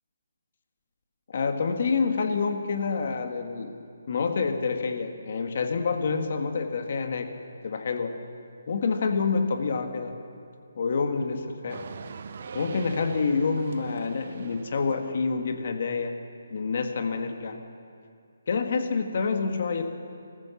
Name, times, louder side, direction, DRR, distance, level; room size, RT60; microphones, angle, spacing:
voice 1, 1.3-3.8 4.1-7.3 7.6-8.2 8.7-10.1 10.7-11.8 12.5-16.1 16.5-17.6 18.5-19.8, left 4 dB, 45° left, 5 dB, 1.7 m, -27 dB
sound 1, 11.7-15.1, right 6 dB, 40° right, 0.8 m, -41 dB
25.0 x 14.5 x 7.1 m, 2.4 s
hypercardioid pair, 175°, 0 cm